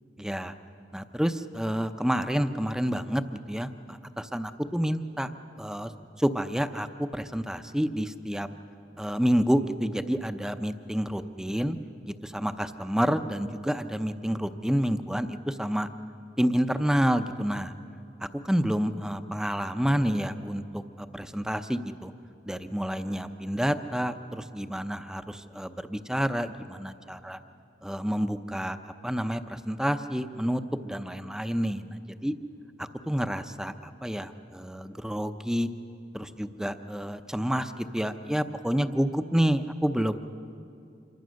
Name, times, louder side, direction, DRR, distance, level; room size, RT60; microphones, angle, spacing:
voice 1, 0.2-0.5 0.9-5.3 5.6-5.9 6.2-8.5 9.0-11.8 12.1-15.9 16.4-17.7 18.2-22.1 22.4-27.4 27.8-32.3 32.8-35.7 36.1-40.2, equal, 5° right, 9 dB, 0.7 m, -29 dB
26.5 x 23.5 x 6.4 m, 2.6 s
head